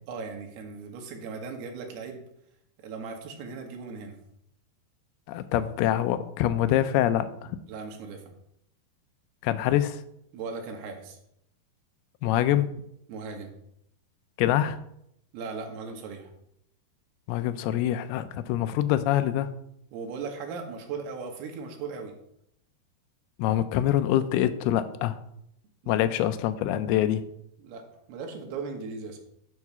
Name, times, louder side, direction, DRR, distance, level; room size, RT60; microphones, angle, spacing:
voice 1, 0.1-2.2 2.8-4.2 7.7-8.2 10.3-11.2 13.1-13.5 15.3-16.3 19.9-22.1 25.8-26.1 27.6-27.8 28.1-29.2, right 5 dB, 75° right, 3 dB, 3.3 m, -38 dB
voice 2, 5.3-7.5 9.4-10.0 12.2-12.7 14.4-14.8 17.3-19.5 23.4-25.2 25.9-27.2, left 12 dB, 80° left, 11 dB, 2.4 m, -25 dB
11.0 x 4.8 x 5.6 m, 0.75 s
omnidirectional pair, 4.8 m